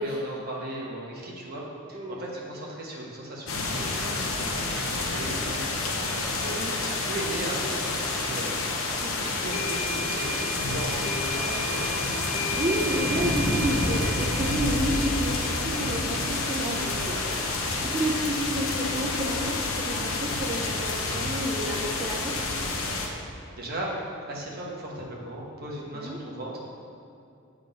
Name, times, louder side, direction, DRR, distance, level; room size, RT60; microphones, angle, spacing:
voice 1, 0.0-1.6 1.9-11.9 23.5-23.9 24.3-26.6, right 1 dB, 45° right, -3 dB, 1.1 m, -37 dB
sound 1, 3.5-23.1, left 2 dB, 70° left, 0.8 m, -29 dB
voice 2, 6.4-6.7 9.0-9.4 12.5-22.4 25.8-26.2, equal, 25° right, -5 dB, 0.5 m, -31 dB
sound 2, 9.3-18.1, left 1 dB, 30° left, 0.5 m, -37 dB
7.6 x 3.7 x 5.1 m, 2.6 s
head